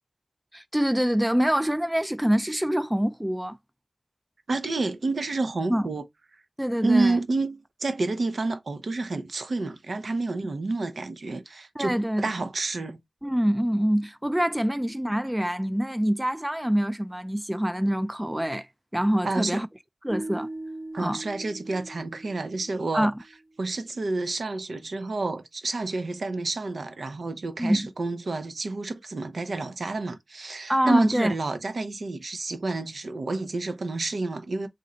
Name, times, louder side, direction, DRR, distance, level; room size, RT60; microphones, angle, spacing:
voice 1, 0.5-3.6 5.7-5.9 6.6-7.2 11.8-12.3 13.2-18.7 18.9-19.7 20.0-20.5 21.0-21.2 22.9-23.1 27.6-27.9 30.7-31.3, equal, 10° right, 0.3 m, -25 dB
voice 2, 4.5-6.1 6.8-13.0 19.2-19.6 20.9-23.1 23.6-34.7, right 3 dB, 85° right, 0.7 m, -29 dB
sound 1, 20.1-23.3, right 2 dB, 50° right, 1.9 m, -39 dB
3.9 x 2.6 x 4.2 m
wide cardioid pair, 75°, 0 cm